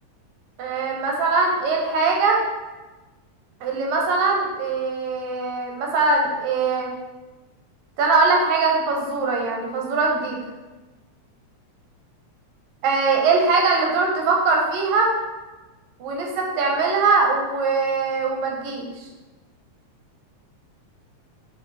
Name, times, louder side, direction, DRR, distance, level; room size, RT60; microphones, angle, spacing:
voice 1, 0.6-2.4 3.6-6.9 8.0-10.4 12.8-15.1 16.0-18.9, right 4 dB, 75° right, -1 dB, 2.1 m, -21 dB
5.6 x 5.1 x 3.4 m, 1.2 s
omnidirectional pair, 3.4 m